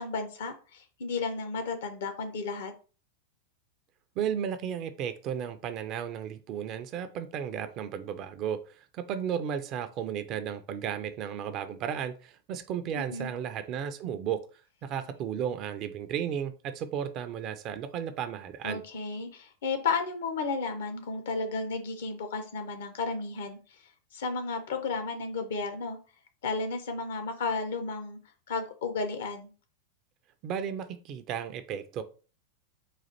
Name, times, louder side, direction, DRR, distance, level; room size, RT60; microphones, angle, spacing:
voice 1, 0.0-2.7 12.9-13.3 18.6-23.6 24.1-26.0 26.4-28.2 28.5-29.5, left 4 dB, 60° left, 0.7 m, -33 dB
voice 2, 4.2-14.4 14.8-18.8 30.4-32.0, right 8 dB, 35° right, 0.4 m, -34 dB
4.1 x 2.5 x 4.2 m
figure-of-eight pair, 90°, 0 cm